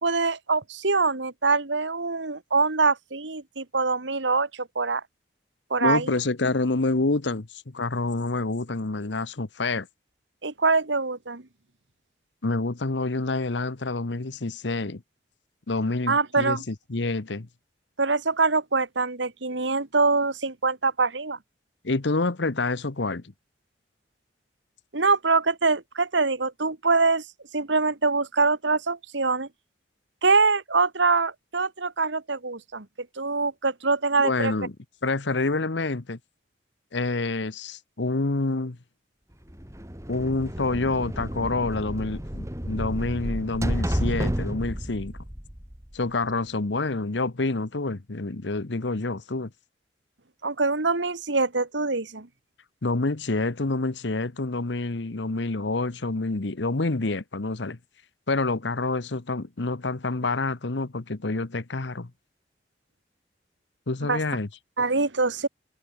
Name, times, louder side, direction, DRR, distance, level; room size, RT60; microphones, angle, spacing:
voice 1, 0.0-5.0 5.7-6.1 10.4-11.4 16.1-16.6 18.0-21.4 24.9-27.2 27.5-29.5 30.2-34.5 50.4-52.3 64.1-64.2 64.8-65.5, right 4 dB, 80° right, 1.8 m, -24 dB
voice 2, 5.8-9.9 12.4-15.0 15.7-17.5 21.8-23.2 34.2-34.7 35.0-36.2 36.9-38.8 40.1-45.1 45.9-49.5 52.8-57.8 58.3-62.1 63.9-64.5, left 3 dB, 75° left, 1.1 m, -27 dB
sound 1, 39.5-46.3, equal, 15° right, 2.7 m, -31 dB
head